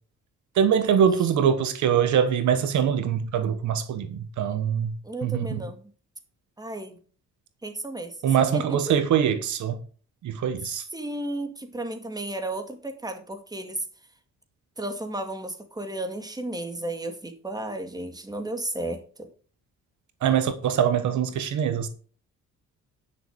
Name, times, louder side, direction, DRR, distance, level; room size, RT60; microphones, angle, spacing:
voice 1, 0.5-4.9 5.2-5.6 8.2-9.8 10.2-10.8 20.2-21.9, right 8 dB, 75° right, 1.3 m, -23 dB
voice 2, 5.0-5.8 6.6-7.0 7.6-8.1 8.5-8.9 10.9-13.8 14.8-19.3, right 1 dB, 15° right, 2.2 m, -33 dB
10.5 x 6.6 x 5.3 m
cardioid pair, 90°, 30 cm